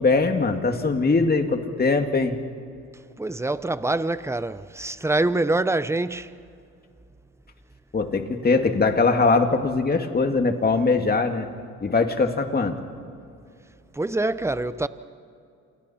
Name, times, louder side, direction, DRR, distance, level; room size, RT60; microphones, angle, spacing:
voice 1, 0.0-2.3 7.9-11.5 11.8-12.8, left 3 dB, 30° left, 2.2 m, -21 dB
voice 2, 3.2-6.3 13.9-14.9, right 2 dB, 10° right, 0.8 m, -25 dB
28.0 x 27.5 x 4.4 m
cardioid pair, 90°, 30 cm